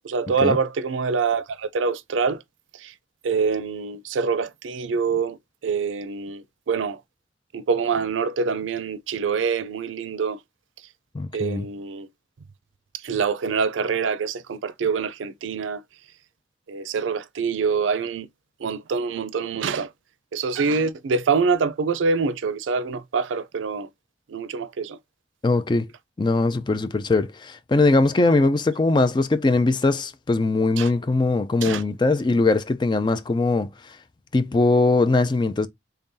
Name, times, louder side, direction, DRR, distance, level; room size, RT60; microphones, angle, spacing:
voice 1, 0.0-2.4 2.8-2.9 3.2-5.4 5.6-7.0 7.5-10.4 11.3-12.1 13.0-15.8 16.7-18.3 18.6-19.9 20.3-23.9 24.3-25.0 30.8-30.9 31.6-31.8, right 5 dB, 90° right, 0.4 m, -25 dB
voice 2, 11.1-11.7 25.4-25.9 26.2-33.7 34.3-35.7, left 3 dB, 25° left, 0.3 m, -21 dB
3.7 x 3.3 x 2.6 m
head